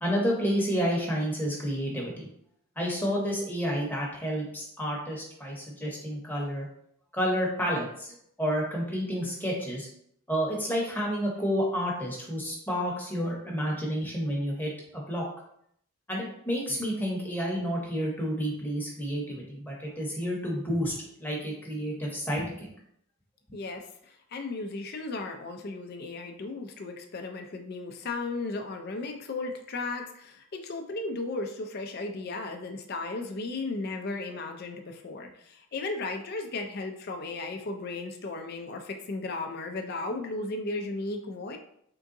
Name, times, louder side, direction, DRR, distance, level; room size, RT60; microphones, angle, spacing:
voice 1, 0.0-2.3 2.8-6.7 7.1-9.9 10.3-15.3 16.1-20.9 21.2-22.7, equal, 10° left, -3 dB, 0.9 m, -30 dB
voice 2, 23.5-41.6, left 3 dB, 45° left, 4 dB, 0.4 m, -35 dB
3.7 x 3.5 x 2.6 m, 0.70 s
head